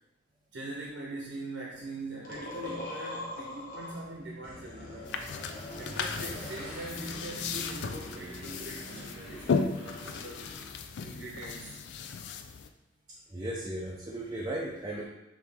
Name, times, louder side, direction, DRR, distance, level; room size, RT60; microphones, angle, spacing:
voice 1, 0.5-5.1 5.7-10.4 11.0-11.8, right 2 dB, 75° right, -2 dB, 0.8 m, -42 dB
Motorcycle / Engine, 1.7-11.4, equal, 30° left, 1.4 m, -47 dB
sound 1, 2.2-4.0 4.4-6.8 7.1-8.7, left 2 dB, 50° left, 1.0 m, -43 dB
sound 2, 5.1-12.7, left 5 dB, 65° left, 0.3 m, -36 dB
voice 2, 13.3-15.0, right 1 dB, 20° right, -4 dB, 0.5 m, -36 dB
4.9 x 3.1 x 3.4 m, 0.91 s
head